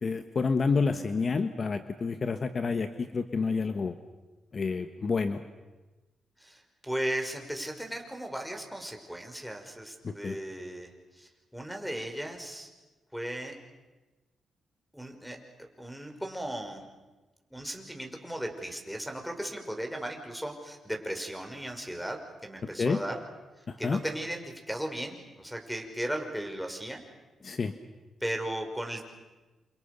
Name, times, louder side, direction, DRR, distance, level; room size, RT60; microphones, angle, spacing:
voice 1, 0.0-4.0 4.5-5.4 10.0-10.4 22.8-23.0 23.7-24.0 27.4-27.7, left 4 dB, 45° left, 9 dB, 1.4 m, -29 dB
voice 2, 6.4-10.9 11.1-12.7 13.1-13.5 14.9-15.4 15.8-16.8 17.5-23.2 23.8-27.0 28.2-29.1, right 1 dB, ahead, 2 dB, 5.8 m, -36 dB
29.5 x 28.5 x 6.9 m, 1.2 s
cardioid pair, 80°, 0 cm